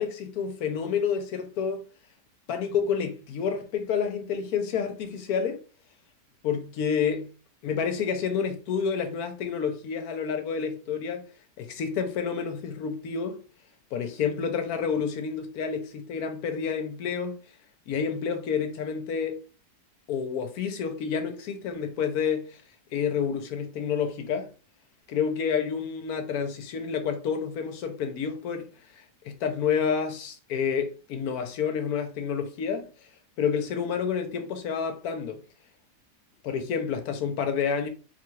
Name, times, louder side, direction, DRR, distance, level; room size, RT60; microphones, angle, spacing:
voice 1, 0.0-1.8 2.5-5.6 6.4-7.3 7.6-11.3 11.6-13.4 13.9-17.4 17.9-19.4 20.1-22.6 22.9-24.5 25.1-28.7 29.0-32.9 33.4-35.4 36.4-37.9, left 6 dB, 70° left, 1.1 m, -29 dB
3.9 x 2.3 x 3.1 m
omnidirectional pair, 1.8 m